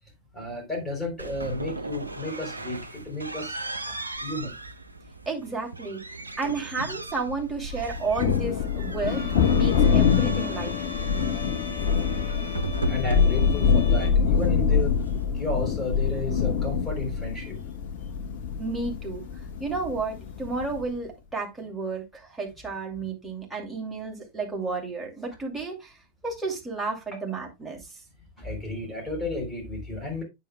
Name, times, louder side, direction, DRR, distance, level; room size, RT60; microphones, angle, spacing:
voice 1, 0.3-4.5 12.8-15.1 15.3-17.6 28.4-30.2, left 2 dB, 10° left, 3.7 m, -33 dB
sound 1, 1.2-15.2, right 2 dB, 80° right, 0.6 m, -37 dB
voice 2, 5.3-6.0 6.4-10.9 18.6-19.2 19.6-25.9 26.2-27.8, right 4 dB, 5° right, 2.6 m, -32 dB
Thunder, 7.7-20.9, left 6 dB, 55° left, 1.1 m, -25 dB
Bowed string instrument, 9.1-14.1, left 5 dB, 35° left, 2.6 m, -40 dB
9.0 x 7.2 x 2.2 m
figure-of-eight pair, 90°, 0 cm